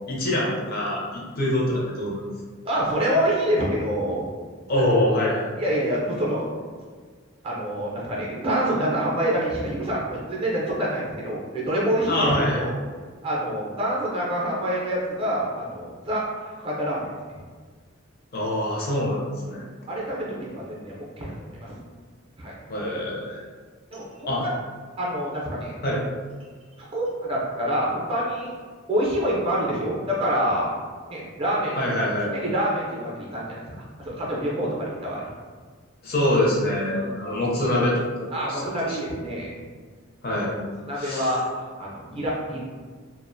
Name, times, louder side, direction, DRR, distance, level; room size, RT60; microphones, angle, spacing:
voice 1, 0.1-2.2 4.7-5.5 12.1-12.6 18.3-19.2 19.5-19.6 22.7-23.4 24.3-24.4 25.8-26.0 31.8-32.3 36.0-38.6 38.9-39.0 40.2-40.5 41.0-41.3, left 1 dB, 45° left, -4 dB, 0.5 m, -24 dB
voice 2, 2.6-4.2 5.6-6.5 7.4-12.7 13.2-17.1 19.5-19.6 19.9-21.7 22.4-22.5 23.9-24.5 25.0-25.8 26.9-28.5 28.9-30.7 31.1-31.8 32.3-33.6 34.0-35.3 36.9-37.4 38.3-39.5 40.8-42.6, equal, 25° right, -4 dB, 0.4 m, -26 dB
2.4 x 2.1 x 2.5 m, 1.5 s
head